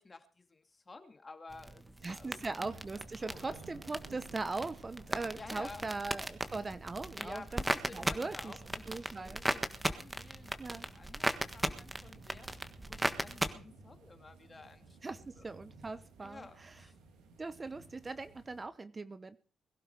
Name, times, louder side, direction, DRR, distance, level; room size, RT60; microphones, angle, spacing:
voice 1, 0.0-2.7 3.2-3.6 5.3-5.9 7.2-12.5 12.9-15.4 16.2-17.0, left 3 dB, 30° left, 7 dB, 2.5 m, -52 dB
sound 1, 1.5-13.5, right 1 dB, 15° right, 1.5 m, -38 dB
voice 2, 2.0-7.6 7.9-8.5 8.9-9.4 10.6-10.8 15.0-16.9 17.4-19.4, right 3 dB, 30° right, 13 dB, 0.9 m, -40 dB
sound 2, 2.0-18.7, right 3 dB, 90° right, 2.7 m, -56 dB
21.5 x 12.0 x 4.8 m, 0.40 s
supercardioid pair, 70°, 0 cm